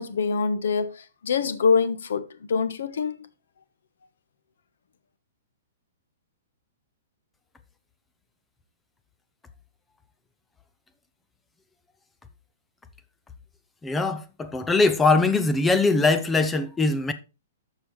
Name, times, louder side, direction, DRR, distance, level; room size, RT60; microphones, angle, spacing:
voice 1, 0.0-3.3, left 5 dB, 75° left, 1.2 m, -25 dB
voice 2, 13.8-17.1, left 3 dB, 5° left, 0.5 m, -21 dB
13.5 x 4.7 x 3.2 m
hypercardioid pair, 175°, 0 cm